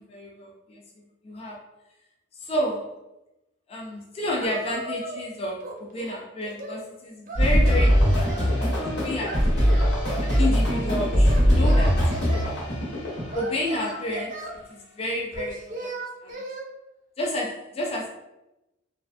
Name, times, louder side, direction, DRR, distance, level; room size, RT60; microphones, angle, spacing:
voice 1, 0.0-1.6 2.3-3.0 3.7-9.5 10.2-12.1 13.3-15.9 16.2-16.4 17.2-18.1, left 1 dB, 30° left, -1 dB, 0.3 m, -31 dB
Singing, 4.4-5.3 5.6-6.8 7.3-8.5 9.2-10.5 11.2-12.5 13.3-14.6 15.3-16.7, right 2 dB, 45° right, 0.4 m, -36 dB
sound 1, 7.4-13.4, equal, 60° left, 1.0 m, -21 dB
2.4 x 2.1 x 2.5 m, 0.93 s
head